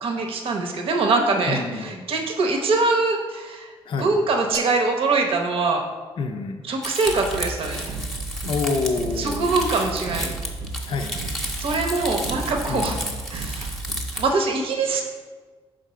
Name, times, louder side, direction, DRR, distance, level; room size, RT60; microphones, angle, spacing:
voice 1, 0.0-3.7 4.0-5.8 6.6-7.9 9.2-10.3 11.6-13.0 13.3-13.7 14.2-15.0, right 3 dB, 65° right, 3 dB, 0.8 m, -23 dB
voice 2, 1.5-1.9 3.9-4.1 6.2-6.6 8.4-9.5 10.8-11.5 12.7-13.0, left 4 dB, 55° left, 5 dB, 0.5 m, -27 dB
sound 1, 4.5-6.5, right 4 dB, 40° right, 0.6 m, -38 dB
Crumpling crinkling, 6.8-14.2, equal, 5° left, 0.8 m, -33 dB
sound 2, 7.0-14.2, right 3 dB, 85° right, 0.4 m, -34 dB
5.2 x 3.7 x 5.6 m, 1.4 s
cardioid pair, 120°, 10 cm